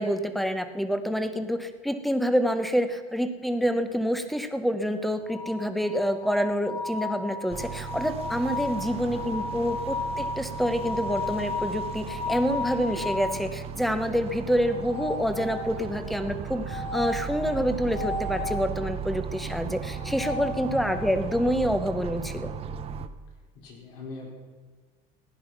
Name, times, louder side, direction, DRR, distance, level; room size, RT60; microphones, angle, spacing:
voice 1, 0.0-22.5, equal, ahead, 9 dB, 0.8 m, -27 dB
sound 1, 5.3-13.4 14.6-15.9 16.6-18.6 19.8-21.2, left 3 dB, 45° left, 2.9 m, -34 dB
sound 2, 7.5-23.1, right 7 dB, 30° right, 0.7 m, -36 dB
voice 2, 8.9-9.4 20.6-21.1 23.5-24.3, left 3 dB, 85° left, -2 dB, 4.9 m, -42 dB
15.5 x 10.0 x 6.0 m, 1.5 s
cardioid pair, 145°, 19 cm